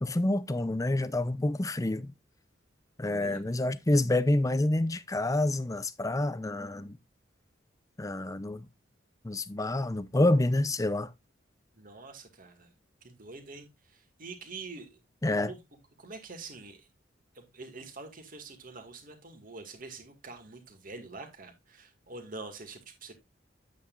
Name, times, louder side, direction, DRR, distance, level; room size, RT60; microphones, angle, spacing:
voice 1, 0.0-2.1 3.0-7.0 8.0-8.7 9.2-11.1 15.2-15.5, left 1 dB, 20° left, 0.5 m, -28 dB
voice 2, 3.1-3.4 11.8-12.7 13.0-13.7 14.2-14.9 15.3-15.6 16.0-16.8 17.4-23.1, right 3 dB, 50° right, 2.1 m, -45 dB
9.4 x 8.4 x 2.5 m
head